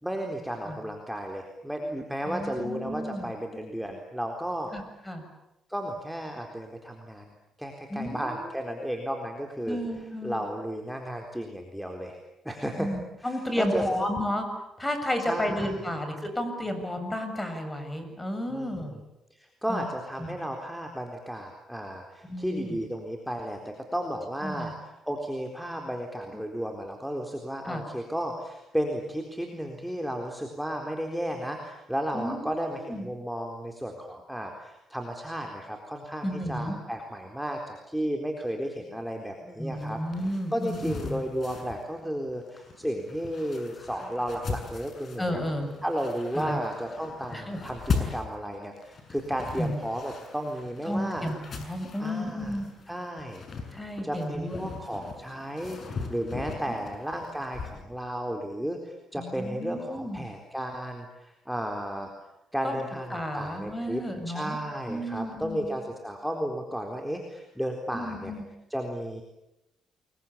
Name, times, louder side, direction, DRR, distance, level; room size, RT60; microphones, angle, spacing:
voice 1, 0.0-4.7 5.7-7.2 7.6-9.8 10.2-12.2 12.4-12.9 13.2-13.8 15.3-15.8 18.5-19.0 19.3-45.4 45.8-51.3 52.0-52.6 52.9-53.4 54.0-62.1 62.5-68.3 68.7-69.2, equal, ahead, 2 dB, 4.0 m, -33 dB
voice 2, 2.3-3.3 4.7-5.2 7.9-8.4 9.6-10.4 12.8-14.5 14.8-18.9 19.7-19.9 20.2-20.4 22.2-22.8 24.4-24.7 27.6-27.8 32.1-33.1 36.2-36.8 39.6-41.2 45.2-45.7 46.4-46.6 47.3-47.6 49.6-49.8 50.8-52.7 53.7-54.7 59.2-60.3 62.6-62.8 63.1-64.6 64.9-65.7 67.9-68.4, equal, 15° left, 7 dB, 7.4 m, -32 dB
sound 1, 39.8-57.8, left 5 dB, 50° left, 6.8 m, -39 dB
29.5 x 23.0 x 8.7 m, 0.91 s
cardioid pair, 90°, 0 cm